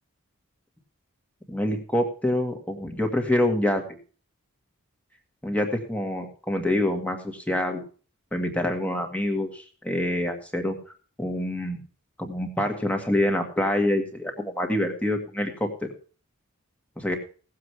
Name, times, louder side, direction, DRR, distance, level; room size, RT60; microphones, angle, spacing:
voice 1, 1.5-3.8 5.4-7.8 8.3-10.8 11.2-11.8 12.2-15.9 17.0-17.2, left 1 dB, 5° left, 3 dB, 2.0 m, -26 dB
17.5 x 7.7 x 4.7 m, 0.39 s
head